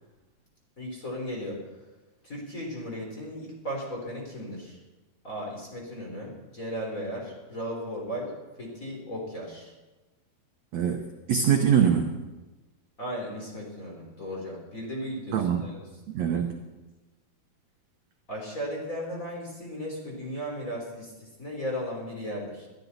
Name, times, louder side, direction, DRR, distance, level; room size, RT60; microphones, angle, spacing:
voice 1, 0.8-1.6 2.2-4.8 5.2-9.7 13.0-15.8 18.3-22.7, equal, 20° left, -1 dB, 3.2 m, -36 dB
voice 2, 10.7-12.2 15.3-15.7 16.1-16.6, right 8 dB, 75° right, 4 dB, 1.6 m, -24 dB
21.0 x 13.5 x 4.1 m, 1.1 s
omnidirectional pair, 4.4 m